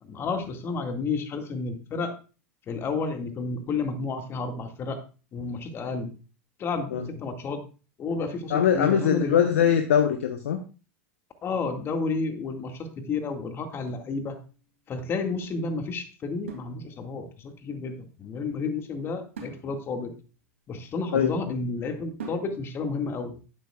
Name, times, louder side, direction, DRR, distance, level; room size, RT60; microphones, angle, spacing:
voice 1, 0.0-2.1 2.7-5.0 5.3-6.1 6.6-7.6 8.0-9.4 11.4-14.4 14.9-20.2 20.7-23.4, left 4 dB, 35° left, 6 dB, 2.0 m, -31 dB
voice 2, 8.5-10.6 21.1-21.3, left 8 dB, 70° left, 6 dB, 1.0 m, -22 dB
sound 1, 13.9-14.8 16.5-17.4 19.3-21.3 22.2-22.9, right 4 dB, 75° right, 2.6 m, -45 dB
12.0 x 9.0 x 2.4 m, 0.34 s
figure-of-eight pair, 85°, 7 cm